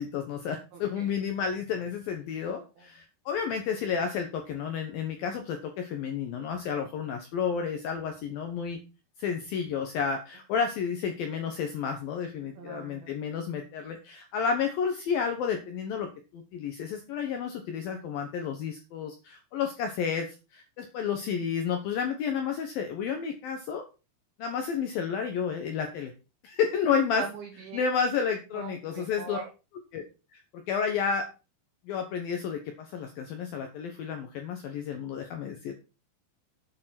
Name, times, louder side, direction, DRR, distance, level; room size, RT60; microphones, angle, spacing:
voice 1, 0.0-8.8 9.2-16.1 16.3-20.3 20.5-23.8 24.4-26.1 26.4-27.2 27.7-29.4 29.9-30.0 30.3-31.2 31.9-35.7, left 6 dB, 70° left, 5 dB, 2.4 m, -31 dB
voice 2, 0.7-1.1 2.4-2.5 2.8-2.9 12.6-13.1 27.2-27.9 28.5-29.5, right 5 dB, 65° right, 3 dB, 2.8 m, -42 dB
9.0 x 6.7 x 5.8 m, 0.31 s
omnidirectional pair, 5.3 m